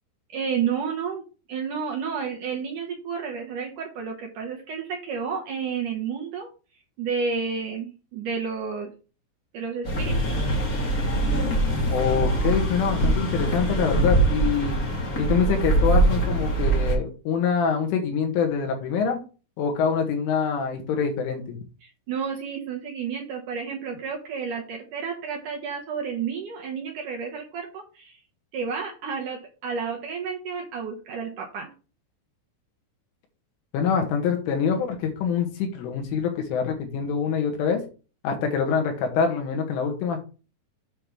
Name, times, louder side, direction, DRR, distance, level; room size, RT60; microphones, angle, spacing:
voice 1, 0.3-1.2 1.5-6.5 7.0-8.9 9.5-10.4 21.8-28.2 28.5-31.7, right 6 dB, 80° right, 1 dB, 1.8 m, -31 dB
sound 1, 9.8-16.9, right 2 dB, 60° left, 0.9 m, -23 dB
voice 2, 11.9-14.8 15.2-19.2 19.6-21.6 33.7-37.8 38.2-40.2, left 6 dB, 80° left, 3 dB, 4.0 m, -25 dB
8.7 x 3.6 x 6.2 m, 0.34 s
omnidirectional pair, 5.6 m